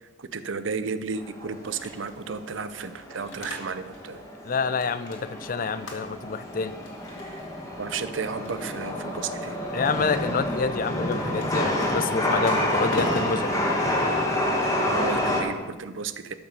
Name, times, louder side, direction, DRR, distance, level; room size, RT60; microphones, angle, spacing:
voice 1, 0.0-4.2 7.8-9.6 14.8-16.3, right 5 dB, 75° right, 12 dB, 0.7 m, -33 dB
Chatter / Subway metro underground, 1.2-15.4, left 1 dB, 15° left, 1.7 m, -28 dB
sound 1, 1.7-2.2 3.0-4.1 4.4-5.5 5.9-6.4 6.7-7.5 8.3-9.2 9.7-10.2 11.0-14.7, left 1 dB, 75° left, 2.1 m, -39 dB
voice 2, 4.4-6.8 9.7-13.5, left 5 dB, 45° left, 15 dB, 0.5 m, -28 dB
12.0 x 5.9 x 6.8 m, 1.2 s
head